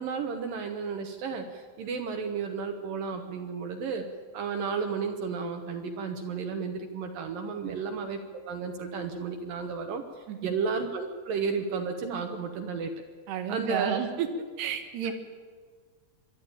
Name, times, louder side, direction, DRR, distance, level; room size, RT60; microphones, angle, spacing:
voice 1, 0.0-4.1 4.3-12.9 13.5-14.0 15.0-15.1, right 5 dB, 70° right, 4 dB, 2.6 m, -33 dB
voice 2, 13.3-14.3 14.6-15.1, right 9 dB, 85° right, 6 dB, 3.6 m, -31 dB
26.0 x 11.5 x 8.8 m, 1.5 s
omnidirectional pair, 4.6 m